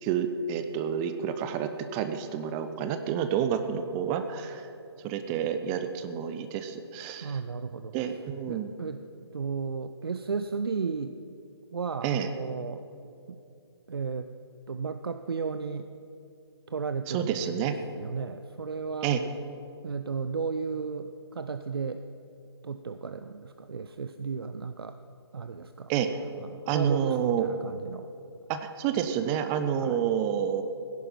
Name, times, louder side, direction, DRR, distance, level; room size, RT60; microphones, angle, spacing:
voice 1, 0.0-4.7 5.0-7.4 7.9-8.7 12.0-12.3 17.1-17.8 19.0-19.2 25.9-26.2 26.7-27.5 28.5-30.6, right 8 dB, 10° right, 9 dB, 0.3 m, -29 dB
voice 2, 7.2-7.9 8.5-9.0 9.3-11.2 11.7-12.8 13.3-13.4 13.9-14.3 14.7-15.9 16.7-17.7 18.0-19.1 19.8-22.0 22.6-25.0 25.3-25.9 26.4-28.1 29.8-30.0, right 5 dB, 60° right, 9 dB, 0.6 m, -34 dB
17.0 x 10.5 x 5.5 m, 2.6 s
figure-of-eight pair, 140°, 14 cm